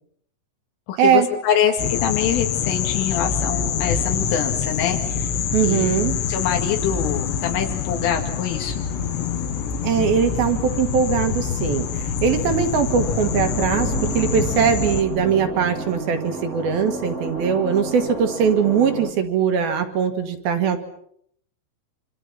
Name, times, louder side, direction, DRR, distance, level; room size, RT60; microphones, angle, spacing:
voice 1, 0.9-5.3 5.6-5.8 6.3-8.8, left 8 dB, 85° left, 3 dB, 4.7 m, -24 dB
sound 1, 1.8-15.0, left 7 dB, 70° left, 3.8 m, -25 dB
voice 2, 5.5-6.2 9.8-20.8, right 7 dB, 60° right, 6 dB, 3.1 m, -21 dB
sound 2, 12.9-19.1, right 3 dB, 35° right, 1.5 m, -31 dB
28.0 x 26.5 x 5.8 m, 0.68 s
omnidirectional pair, 5.6 m